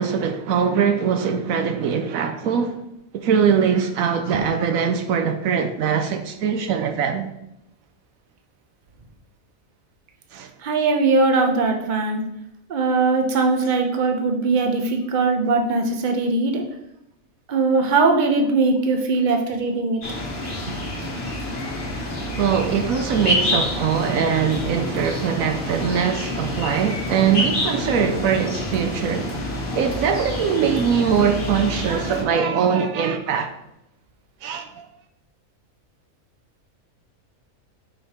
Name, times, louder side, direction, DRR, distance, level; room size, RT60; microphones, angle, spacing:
voice 1, 0.0-2.8 3.1-7.3 10.3-10.5 22.4-29.3 29.7-33.5 34.4-34.9, right 7 dB, 80° right, 1.1 m, -22 dB
voice 2, 10.6-12.2 12.7-16.6 17.5-20.0, right 3 dB, 40° right, 0.9 m, -20 dB
sound 1, 20.0-32.2, left 1 dB, 40° left, 1.4 m, -28 dB
5.7 x 5.3 x 4.3 m
omnidirectional pair, 1.4 m